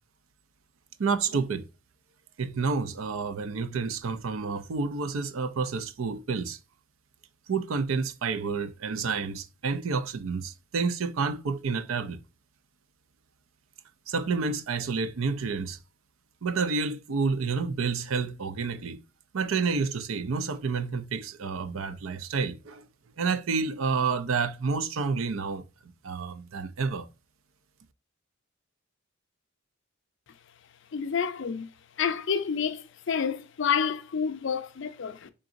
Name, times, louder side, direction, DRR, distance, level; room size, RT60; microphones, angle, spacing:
voice 1, 1.0-1.6 2.4-6.6 7.5-12.2 14.1-15.8 16.4-19.0 19.3-22.8 23.2-25.6 26.0-27.1, right 4 dB, 80° right, 0.5 m, -29 dB
voice 2, 30.9-31.7 32.0-35.3, left 7 dB, 60° left, 0.5 m, -29 dB
3.8 x 3.8 x 2.5 m
head